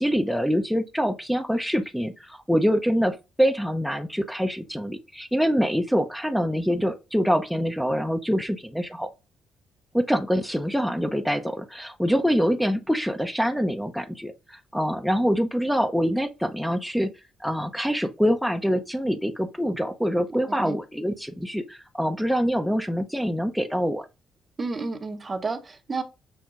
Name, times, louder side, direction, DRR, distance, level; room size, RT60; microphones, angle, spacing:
voice 1, 0.0-9.1 9.9-17.1 17.4-24.1, equal, ahead, 0.6 m, -25 dB
voice 2, 20.5-20.8 24.6-26.0, right 3 dB, 30° right, 0.8 m, -31 dB
6.1 x 2.2 x 3.7 m
cardioid pair, 90°, 0 cm